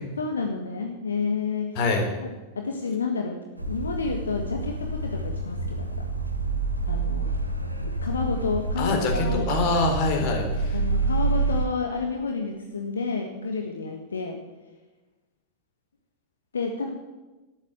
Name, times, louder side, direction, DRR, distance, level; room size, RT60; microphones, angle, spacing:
voice 1, 0.2-1.8 2.5-3.4 3.7-5.9 6.9-7.3 7.8-9.4 10.2-10.4 10.7-14.4 16.5-16.9, left 4 dB, 70° left, 3 dB, 1.5 m, -30 dB
voice 2, 1.8-2.1 8.8-10.8, left 3 dB, 45° left, 4 dB, 3.6 m, -24 dB
sound 1, 3.6-11.7, right 3 dB, 90° right, 1.6 m, -28 dB
12.5 x 10.5 x 7.9 m, 1.1 s
figure-of-eight pair, 90°, 0 cm